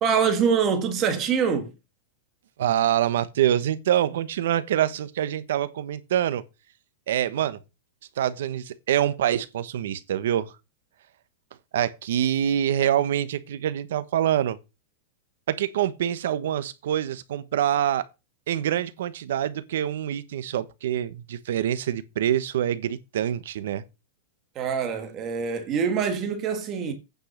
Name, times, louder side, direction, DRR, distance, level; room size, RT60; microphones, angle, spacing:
voice 1, 0.0-1.7 24.5-26.9, right 6 dB, 20° right, 1.7 m, -24 dB
voice 2, 2.6-6.4 7.1-7.6 8.2-10.5 11.7-14.6 15.5-18.0 18.5-23.8, right 11 dB, 65° right, 1.1 m, -25 dB
9.1 x 5.5 x 6.6 m
supercardioid pair, 175°, 0 cm